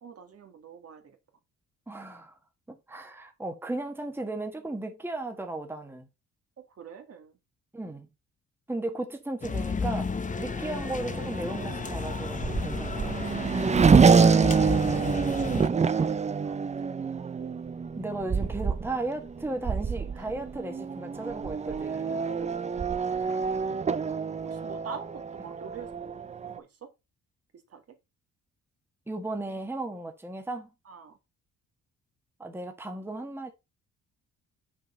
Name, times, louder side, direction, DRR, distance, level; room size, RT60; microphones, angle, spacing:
voice 1, 0.0-1.2 6.6-7.4 13.6-17.1 20.1-20.3 22.2-23.0 24.4-26.9 27.5-28.0 30.8-31.2, right 7 dB, 50° right, 1.8 m, -45 dB
voice 2, 1.9-2.4 2.7-6.1 7.7-8.1 8.7-10.1 10.4-13.3 18.0-22.3 23.3-23.4 29.1-30.7 32.4-33.5, right 2 dB, 5° right, 1.4 m, -35 dB
sound 1, 9.4-15.7, left 5 dB, 25° left, 0.8 m, -33 dB
Race car auto racing / Accelerating revving vroom, 10.4-26.6, right 5 dB, 25° right, 0.6 m, -26 dB
6.3 x 4.6 x 5.4 m
cardioid pair, 90°, 30 cm